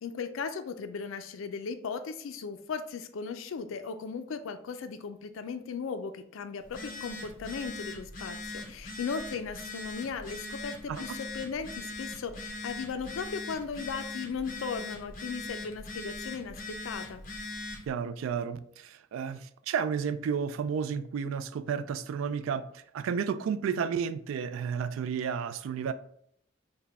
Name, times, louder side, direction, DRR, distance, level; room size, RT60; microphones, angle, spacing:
voice 1, 0.0-17.2, left 5 dB, 85° left, 0.4 m, -37 dB
Telephone, 6.6-17.9, left 2 dB, 45° left, 0.7 m, -41 dB
voice 2, 17.9-22.7 22.9-25.9, right 7 dB, 85° right, 0.3 m, -32 dB
4.6 x 2.2 x 3.4 m
head